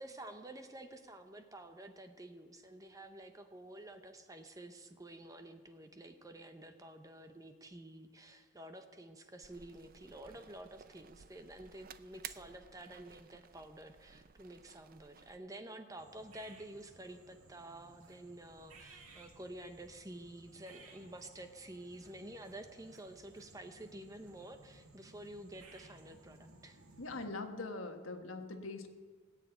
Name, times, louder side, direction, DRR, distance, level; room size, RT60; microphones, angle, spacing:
voice 1, 0.0-26.8, right 1 dB, 15° right, 7 dB, 0.8 m, -50 dB
sound 1, 9.4-15.4, right 9 dB, 40° right, 0.5 m, -55 dB
sound 2, 16.0-27.3, right 3 dB, 90° right, 2.0 m, -59 dB
voice 2, 27.0-28.9, left 3 dB, 70° left, 5 dB, 1.5 m, -42 dB
17.5 x 7.5 x 9.2 m, 1.5 s
head